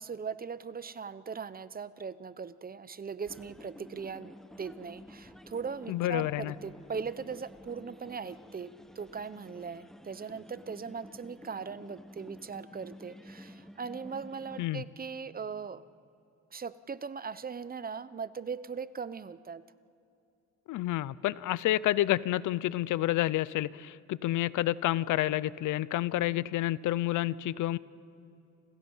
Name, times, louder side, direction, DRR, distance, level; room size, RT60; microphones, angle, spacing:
voice 1, 0.0-15.8 16.5-19.6 26.2-26.4, right 5 dB, 30° right, 15 dB, 0.8 m, -39 dB
sound 1, 3.3-14.7, equal, ahead, 1.0 m, -51 dB
voice 2, 5.9-6.5 14.6-14.8 20.7-27.8, left 15 dB, 80° left, 19 dB, 0.7 m, -29 dB
29.5 x 26.5 x 5.6 m, 2.6 s
cardioid pair, 90°, 30 cm